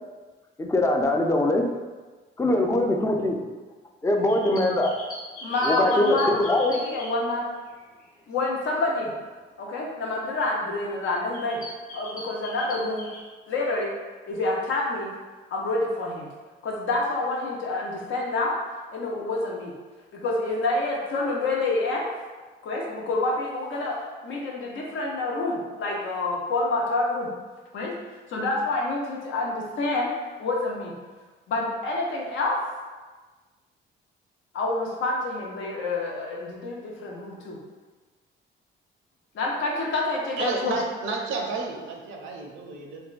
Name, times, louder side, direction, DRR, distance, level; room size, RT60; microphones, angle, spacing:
voice 1, 0.6-1.7 2.4-3.4 4.0-4.9 5.6-6.9, left 1 dB, 15° left, 2 dB, 0.3 m, -22 dB
sound 1, 4.2-8.2 8.7-8.9 9.9-10.0 10.5-10.7 11.0-13.2, left 1 dB, 45° left, 0.9 m, -41 dB
voice 2, 5.4-6.3 6.7-7.4 8.3-9.1 9.6-11.6 11.9-13.1 13.5-13.9 14.3-15.1 15.5-16.3 16.6-18.5 18.9-19.7 20.1-22.1 22.6-24.0 24.2-27.3 27.7-27.9 28.3-30.1 30.4-30.9 31.5-32.6 34.5-37.6 39.3-40.8, left 2 dB, 75° left, -2 dB, 0.7 m, -27 dB
voice 3, 40.4-43.0, right 3 dB, 90° right, 1 dB, 0.5 m, -31 dB
3.5 x 2.2 x 2.4 m, 1.3 s
cardioid pair, 90°, 20 cm